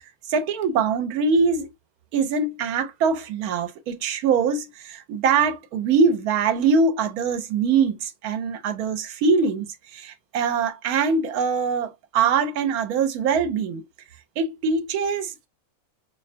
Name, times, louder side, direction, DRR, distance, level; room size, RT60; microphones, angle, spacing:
voice 1, 0.3-1.7 2.1-9.7 9.9-13.9 14.4-15.5, right 5 dB, 80° right, 1.1 m, -23 dB
2.6 x 2.2 x 2.5 m
omnidirectional pair, 1.5 m